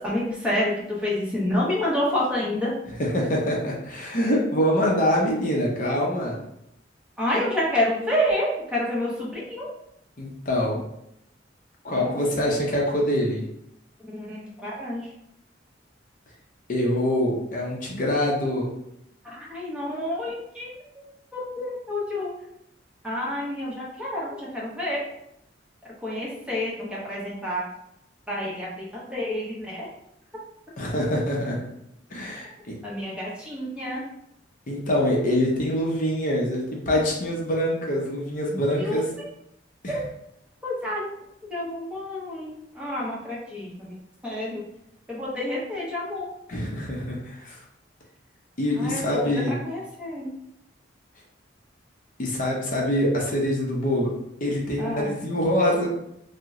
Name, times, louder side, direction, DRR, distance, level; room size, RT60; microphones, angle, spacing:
voice 1, 0.0-2.7 7.2-9.7 11.9-12.1 14.1-15.1 19.2-21.0 21.3-22.3 23.0-25.0 26.0-27.6 28.3-29.9 32.8-34.0 38.8-39.0 39.9-40.0 40.6-41.1 41.5-43.9 44.2-44.6 45.1-46.3 48.8-49.2 49.6-50.3 54.8-55.1, left 1 dB, 5° right, -6 dB, 0.8 m, -28 dB
voice 2, 3.0-6.4 10.2-10.8 11.8-13.4 16.7-18.7 30.8-31.6 32.1-32.7 34.7-39.1 39.8-40.0 46.5-47.6 48.6-49.6 52.2-54.1 54.4-55.9, left 1 dB, 45° left, -2 dB, 0.6 m, -25 dB
2.8 x 2.0 x 3.5 m, 0.79 s
head